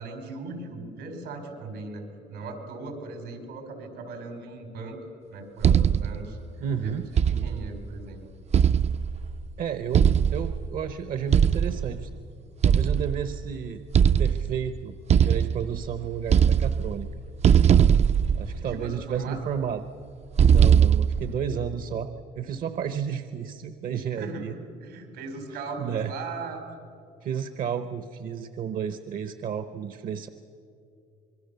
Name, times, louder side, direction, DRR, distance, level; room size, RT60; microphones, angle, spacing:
voice 1, 0.0-5.0 5.3-6.4 6.8-8.2 18.6-19.4 24.2-24.5 24.8-26.6, right 3 dB, 90° right, 5 dB, 4.7 m, -38 dB
sound 1, 5.6-6.3 7.2-7.8 8.5-9.3 9.9-10.7 11.3-11.9 12.6-13.4 13.9-14.6 15.1-15.9 16.2-17.1 17.4-18.9 20.4-21.4, right 8 dB, 40° right, 0.5 m, -20 dB
voice 2, 6.6-7.1 9.6-12.1 12.6-13.8 14.2-17.2 18.3-19.8 20.5-22.1 22.3-24.5 25.5-26.1 27.2-30.3, right 8 dB, 55° right, 10 dB, 0.9 m, -32 dB
25.5 x 22.5 x 6.9 m, 2.6 s
cardioid pair, 110°, 17 cm